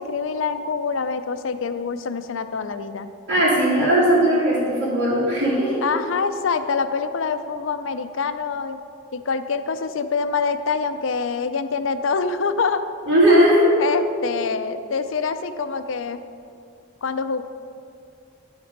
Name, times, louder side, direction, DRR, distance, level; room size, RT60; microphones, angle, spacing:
voice 1, 0.0-3.1 5.8-8.8 9.1-12.9 13.8-16.2 17.0-17.4, left 5 dB, 80° left, 10 dB, 0.5 m, -25 dB
voice 2, 3.3-5.8 13.1-13.7, equal, 70° right, -11 dB, 2.4 m, -18 dB
11.0 x 6.0 x 5.2 m, 2.4 s
head